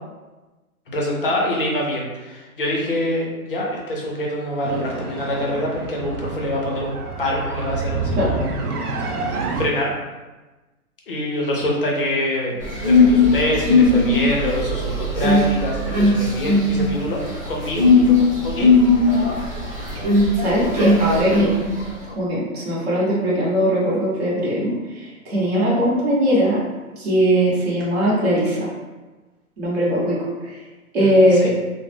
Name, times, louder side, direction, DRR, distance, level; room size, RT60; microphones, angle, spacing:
voice 1, 0.9-9.9 11.1-17.2 17.5-18.7 19.0-19.1 31.0-31.5, left 1 dB, 40° left, -2 dB, 0.5 m, -25 dB
sound 1, 4.6-9.6, right 3 dB, 85° right, 0.6 m, -28 dB
sound 2, 12.6-21.9, left 3 dB, 25° right, 0.5 m, -18 dB
voice 2, 20.4-21.5 22.1-26.6 27.0-28.7 29.6-30.6 30.9-31.5, equal, 45° right, -7 dB, 1.0 m, -20 dB
2.3 x 2.0 x 3.2 m, 1.2 s
hypercardioid pair, 160°, 44 cm